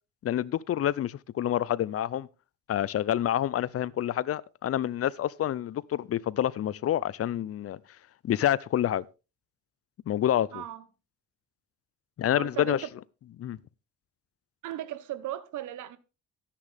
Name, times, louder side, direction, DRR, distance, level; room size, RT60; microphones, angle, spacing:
voice 1, 0.2-2.3 2.7-7.8 8.2-9.0 10.1-10.6 12.2-12.8 13.4-13.6, left 11 dB, 50° left, 0.5 m, -28 dB
voice 2, 10.5-10.8 12.3-12.9 14.6-16.0, right 13 dB, 80° right, 1.1 m, -37 dB
13.5 x 9.9 x 3.5 m
cardioid pair, 90°, 30 cm